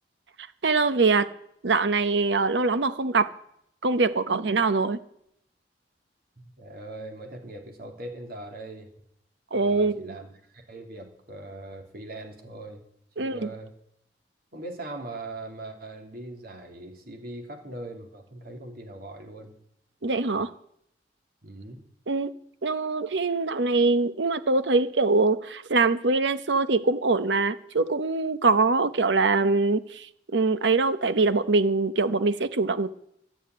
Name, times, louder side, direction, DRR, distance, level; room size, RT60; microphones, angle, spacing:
voice 1, 0.4-1.3 1.6-3.3 3.8-5.0 9.5-10.1 13.2-13.5 20.0-20.5 22.1-22.3 22.6-30.1 30.3-32.9, right 3 dB, 80° right, 13 dB, 0.9 m, -23 dB
voice 2, 6.4-8.9 9.5-12.8 13.2-13.7 14.5-19.5 21.4-21.8, right 2 dB, 60° right, 3 dB, 2.8 m, -41 dB
13.0 x 7.1 x 9.3 m, 0.73 s
head